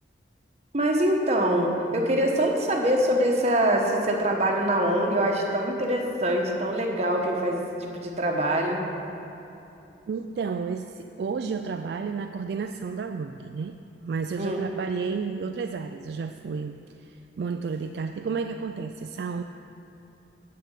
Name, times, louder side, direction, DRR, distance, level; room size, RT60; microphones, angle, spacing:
voice 1, 0.7-8.8 14.4-14.6, right 1 dB, 35° right, 1 dB, 1.1 m, -24 dB
voice 2, 10.1-19.4, right 5 dB, 60° right, 7 dB, 0.3 m, -32 dB
7.8 x 6.7 x 8.2 m, 2.9 s
head